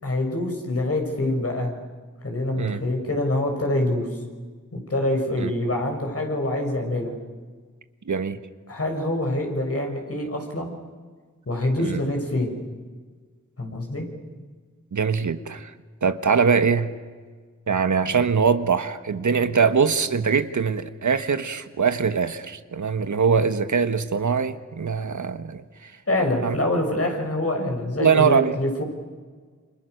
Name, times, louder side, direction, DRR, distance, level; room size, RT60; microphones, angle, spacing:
voice 1, 0.0-1.7 2.2-4.1 4.7-7.1 8.7-10.7 11.5-12.6 13.6-14.1 26.1-28.8, left 1 dB, 55° left, 6.8 m, -25 dB
voice 2, 8.0-8.4 11.8-12.1 14.9-15.7 16.0-16.9 17.7-25.9 26.4-26.5 28.0-28.6, right 6 dB, 75° right, 1.5 m, -22 dB
29.0 x 27.0 x 6.7 m
wide cardioid pair, 65°, 30 cm